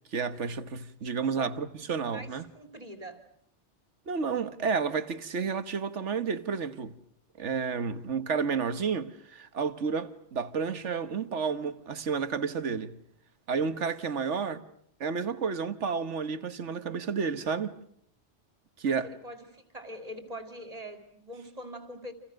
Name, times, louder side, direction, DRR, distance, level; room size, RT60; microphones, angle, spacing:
voice 1, 0.1-2.4 4.1-6.9 7.4-12.9 13.5-14.6 15.0-17.7 18.8-19.1, right 5 dB, 80° right, 1.6 m, -31 dB
voice 2, 2.1-3.2 18.8-22.1, equal, 35° right, 3.3 m, -43 dB
30.0 x 28.0 x 6.4 m
omnidirectional pair, 1.2 m